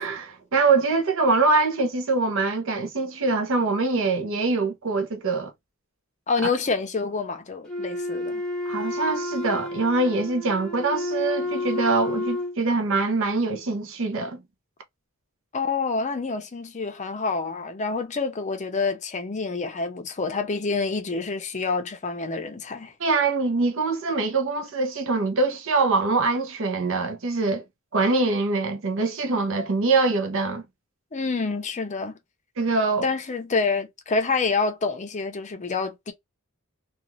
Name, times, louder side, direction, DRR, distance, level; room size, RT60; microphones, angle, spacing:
voice 1, 0.0-5.5 8.7-14.4 23.0-27.6 27.9-30.6 32.6-33.1, right 3 dB, 60° right, 0.7 m, -24 dB
voice 2, 6.3-8.4 15.5-22.9 31.1-32.2 33.0-36.1, left 4 dB, 35° left, 0.6 m, -27 dB
Wind instrument woodwind instrument, 7.7-12.6, left 2 dB, 5° left, 0.8 m, -30 dB
2.4 x 2.4 x 3.0 m
head